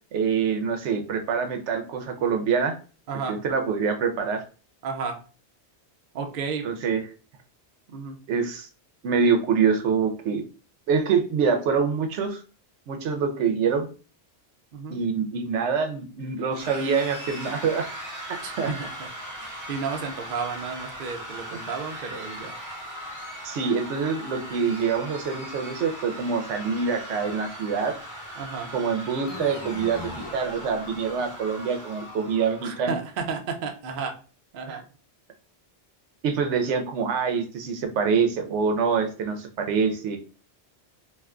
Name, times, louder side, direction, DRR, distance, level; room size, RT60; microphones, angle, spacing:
voice 1, 0.1-2.7 3.3-4.4 6.6-7.0 8.3-8.7 9.0-10.4 10.9-12.4 12.9-13.9 14.9-17.8 18.3-18.7 23.4-27.9 28.7-33.0 34.7-34.8 36.2-40.2, right 6 dB, 90° right, 5 dB, 0.9 m, -25 dB
voice 2, 3.1-3.4 4.8-5.2 6.1-6.7 7.9-8.2 14.7-15.0 18.4-19.1 19.4-22.6 28.4-28.7 32.6-34.1 34.5-34.8, right 5 dB, 60° right, 4 dB, 0.7 m, -32 dB
sound 1, 16.5-32.8, equal, 20° right, 0.7 m, -39 dB
sound 2, 29.3-31.6, left 3 dB, 40° left, 0.4 m, -40 dB
2.5 x 2.2 x 3.5 m, 0.37 s
omnidirectional pair, 1.1 m